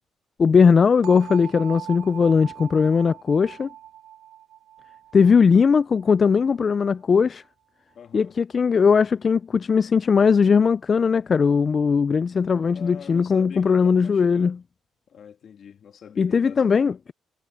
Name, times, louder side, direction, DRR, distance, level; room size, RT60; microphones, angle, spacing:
voice 1, 0.4-3.7 5.1-7.4 8.1-14.6 16.2-17.1, left 5 dB, 40° left, 0.3 m, -19 dB
sound 1, 1.0-6.9, right 11 dB, 85° right, 1.0 m, -41 dB
voice 2, 7.9-8.4 12.7-14.6 15.1-17.0, left 8 dB, 60° left, 2.0 m, -44 dB
cardioid pair, 90°, 0 cm